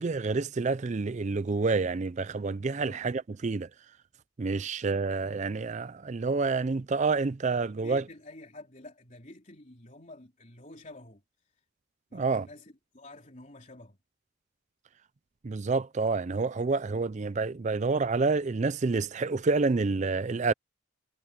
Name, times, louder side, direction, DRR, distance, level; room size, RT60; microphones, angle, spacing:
voice 1, 0.0-3.7 4.4-8.0 12.1-12.5 15.4-20.5, right 4 dB, 35° right, 0.4 m, -28 dB
voice 2, 7.8-11.2 12.1-14.0, left 2 dB, 35° left, 3.8 m, -49 dB
head